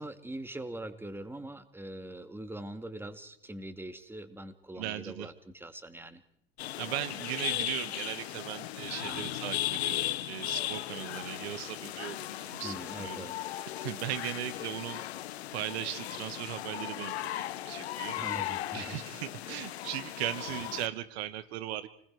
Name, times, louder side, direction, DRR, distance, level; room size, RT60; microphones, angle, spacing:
voice 1, 0.0-6.2 9.0-9.3 12.6-13.4 18.1-19.0 20.5-20.6, right 1 dB, 5° right, 10 dB, 2.2 m, -42 dB
voice 2, 4.8-5.3 6.8-13.3 13.5-15.0 15.5-18.2 18.7-21.9, right 13 dB, 80° right, 15 dB, 1.4 m, -38 dB
sound 1, 6.6-20.9, left 13 dB, 90° left, 1.1 m, -37 dB
29.0 x 20.5 x 4.7 m, 0.68 s
hypercardioid pair, 85°, 31 cm